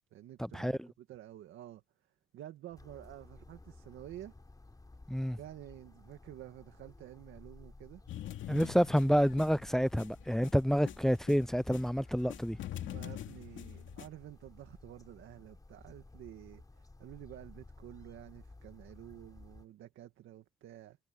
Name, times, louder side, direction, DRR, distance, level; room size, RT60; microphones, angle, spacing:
voice 1, 0.1-1.8 2.3-4.3 5.4-8.0 12.8-21.0, right 13 dB, 85° right, 2.0 m, -50 dB
sound 1, 2.8-19.7, left 2 dB, 20° left, 4.6 m, -55 dB
sound 2, 8.1-11.9 12.2-14.1, left 12 dB, 75° left, 2.4 m, -44 dB
voice 2, 8.5-12.6, equal, ahead, 0.3 m, -28 dB
cardioid pair, 90°, 20 cm